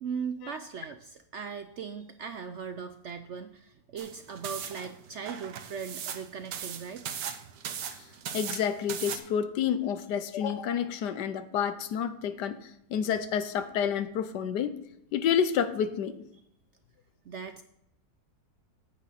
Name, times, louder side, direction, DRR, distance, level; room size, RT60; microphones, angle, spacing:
voice 1, 0.0-7.0 11.1-11.2 17.3-17.6, right 6 dB, 65° right, 0.7 m, -39 dB
sound 1, 4.0-9.2, right 8 dB, 85° right, 1.5 m, -38 dB
voice 2, 8.3-12.6 12.9-14.8 15.1-16.2, left 8 dB, 85° left, 1.4 m, -29 dB
9.4 x 8.6 x 4.2 m
omnidirectional pair, 1.8 m